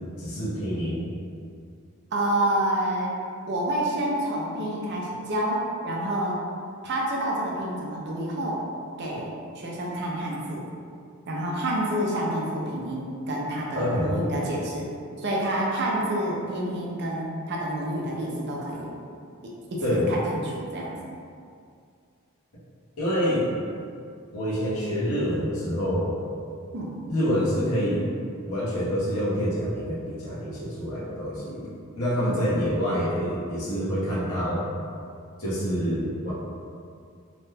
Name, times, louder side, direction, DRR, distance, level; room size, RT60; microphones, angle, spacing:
voice 1, 0.2-1.1 13.7-14.2 19.8-20.1 23.0-23.5 24.3-26.2 27.1-28.1 28.5-31.6 32.0-34.6 35.4-36.3, equal, 75° left, -8 dB, 1.0 m, -26 dB
voice 2, 2.1-3.1 3.5-6.4 6.8-8.6 9.0-10.6 11.3-14.9 15.2-18.9 19.7-20.9 26.7-26.9 32.2-32.4, right 1 dB, 50° right, -3 dB, 0.5 m, -28 dB
2.9 x 2.2 x 3.3 m, 2.3 s
head